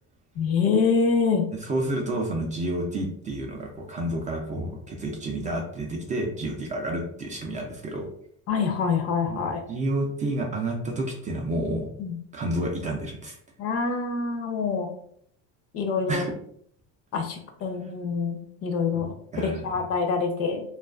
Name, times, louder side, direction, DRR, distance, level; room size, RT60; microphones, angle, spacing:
voice 1, 0.4-1.5 8.5-9.6 12.0-12.2 13.6-14.9 15.7-16.3 17.1-20.6, left 5 dB, 45° left, 4 dB, 0.5 m, -26 dB
voice 2, 1.6-8.1 9.2-11.9 12.3-13.4 16.1-16.3 18.9-19.0 19.3-19.7, right 1 dB, 25° right, 1 dB, 0.4 m, -30 dB
2.3 x 2.3 x 2.3 m, 0.65 s
supercardioid pair, 110°, 33 cm